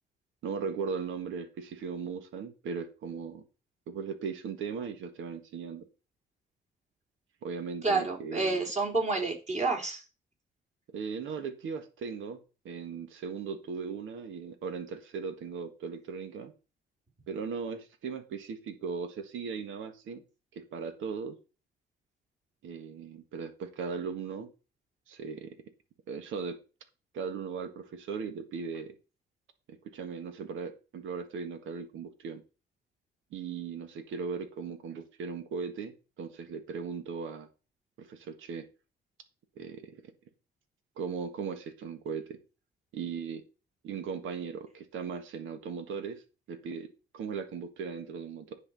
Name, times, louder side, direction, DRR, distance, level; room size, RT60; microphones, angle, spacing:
voice 1, 0.4-3.4 3.9-5.8 7.4-8.6 10.9-12.4 12.6-16.5 17.3-20.2 20.5-21.4 22.6-24.5 25.1-25.5 26.1-26.6 27.1-28.9 29.7-32.4 33.3-37.5 38.0-38.6 39.6-40.0 41.0-42.4 42.9-43.4 43.8-46.2 46.5-46.9 47.1-48.6, right 5 dB, 80° right, 8 dB, 1.5 m, -38 dB
voice 2, 7.8-10.0, right 3 dB, 35° right, 0 dB, 3.9 m, -29 dB
9.8 x 4.4 x 6.8 m, 0.32 s
cardioid pair, 90°, 20 cm